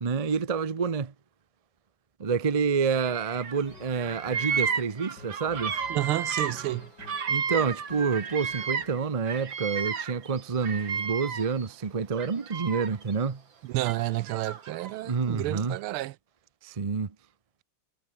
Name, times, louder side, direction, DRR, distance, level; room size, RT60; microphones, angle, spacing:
voice 1, 0.0-1.1 2.2-5.7 7.3-13.4 15.0-15.8 16.6-17.1, right 5 dB, 45° right, 0.4 m, -28 dB
Bird vocalization bird call bird song, 2.9-3.6 3.9-9.0 9.3-11.7 12.1-13.1 13.8-14.9, right 6 dB, 65° right, 3.0 m, -33 dB
sound 1, 3.6-9.0, left 3 dB, 55° left, 5.8 m, -49 dB
voice 2, 5.9-6.9 13.6-16.1, right 17 dB, 90° right, 1.5 m, -30 dB
omnidirectional pair, 2.3 m